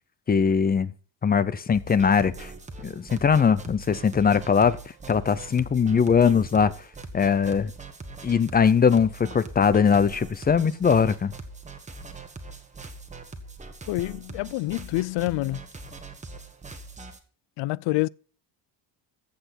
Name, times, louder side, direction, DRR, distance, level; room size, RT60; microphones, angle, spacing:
voice 1, 0.3-0.9 1.2-2.5 2.8-4.8 5.1-6.7 7.1-7.7 8.2-11.3, left 6 dB, 20° left, 0.5 m, -21 dB
sound 1, 1.7-17.2, right 3 dB, 15° right, 1.4 m, -42 dB
voice 2, 13.9-15.7 17.6-18.1, left 19 dB, 70° left, 0.5 m, -27 dB
14.5 x 8.0 x 4.2 m
cardioid pair, 165°, 46 cm